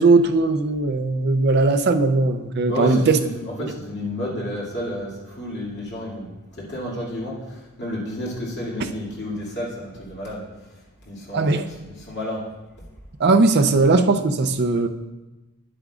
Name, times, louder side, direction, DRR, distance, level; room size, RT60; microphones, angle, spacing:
voice 1, 0.0-3.2 3.6-3.7 11.3-11.7 13.2-14.9, right 3 dB, 50° right, 7 dB, 0.5 m, -18 dB
voice 2, 2.7-5.1 5.4-6.3 6.6-7.4 7.8-10.4 11.1-12.4, left 1 dB, 50° left, -6 dB, 2.4 m, -31 dB
9.4 x 8.6 x 2.4 m, 1.1 s
head